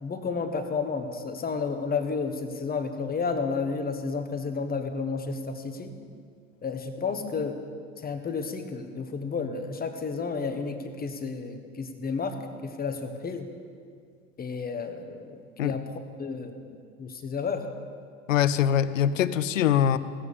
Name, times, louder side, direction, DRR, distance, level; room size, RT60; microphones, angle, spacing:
voice 1, 0.0-5.9 6.6-7.6 8.0-12.4 12.6-13.5 14.4-15.8 16.2-17.7, left 5 dB, 25° left, 6 dB, 1.4 m, -31 dB
voice 2, 18.3-20.0, left 9 dB, 85° left, 14 dB, 0.6 m, -23 dB
15.5 x 8.8 x 7.1 m, 2.2 s
hypercardioid pair, 85°, 38 cm